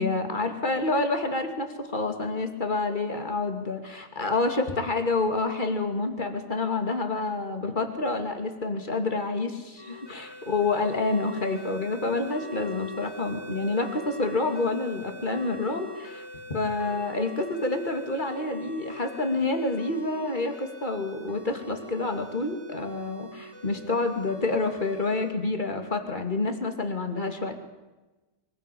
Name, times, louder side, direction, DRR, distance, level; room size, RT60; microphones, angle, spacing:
voice 1, 0.0-27.5, left 3 dB, 25° left, 6 dB, 2.7 m, -28 dB
sound 1, 9.8-25.3, left 2 dB, 15° right, 3.5 m, -43 dB
24.0 x 16.0 x 8.6 m, 1.1 s
omnidirectional pair, 1.9 m